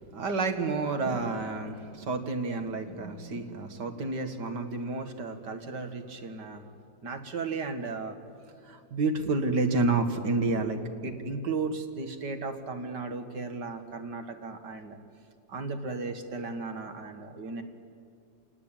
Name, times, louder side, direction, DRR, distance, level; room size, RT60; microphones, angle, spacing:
voice 1, 0.0-6.6 7.0-8.2 8.6-15.0 15.5-17.6, right 3 dB, 65° right, 6 dB, 2.3 m, -32 dB
29.0 x 18.5 x 8.9 m, 2.4 s
omnidirectional pair, 1.9 m